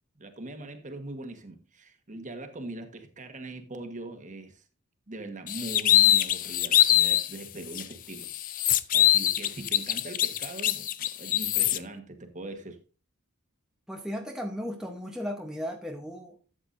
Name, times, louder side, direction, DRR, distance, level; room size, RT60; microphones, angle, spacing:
voice 1, 0.2-4.6 5.1-8.3 8.9-12.8, right 2 dB, 35° right, 1.3 m, -41 dB
sound 1, 5.5-7.3 7.7-7.8 8.2-11.8, left 12 dB, 40° left, 0.4 m, -23 dB
voice 2, 13.9-16.4, equal, 5° right, 0.9 m, -35 dB
12.5 x 7.9 x 2.6 m
head